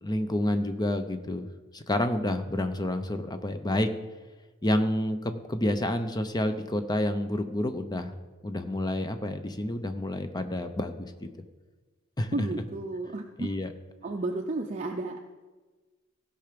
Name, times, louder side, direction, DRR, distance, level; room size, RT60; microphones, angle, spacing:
voice 1, 0.0-1.5 1.7-3.9 4.6-8.2 8.4-11.3 12.2-12.4 13.4-13.7, left 1 dB, 20° left, 8 dB, 0.7 m, -29 dB
voice 2, 12.3-13.5 14.0-15.2, right 2 dB, 35° right, 2 dB, 0.6 m, -32 dB
16.0 x 5.8 x 5.2 m, 1.3 s
head